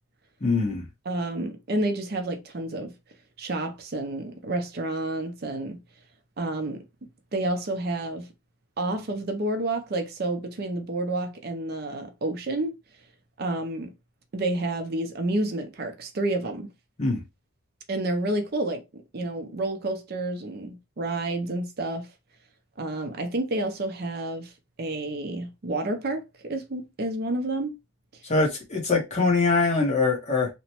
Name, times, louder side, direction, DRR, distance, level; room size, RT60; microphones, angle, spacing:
voice 1, 0.4-0.8 17.0-17.2 28.2-30.5, left 3 dB, 30° left, 0.8 m, -23 dB
voice 2, 1.1-2.9 3.4-5.8 6.4-6.8 7.3-8.3 8.8-12.7 13.4-13.9 14.3-16.7 17.9-18.8 19.1-22.1 22.8-24.5 24.8-27.7, right 2 dB, 45° right, 0.5 m, -29 dB
2.9 x 2.1 x 2.8 m
head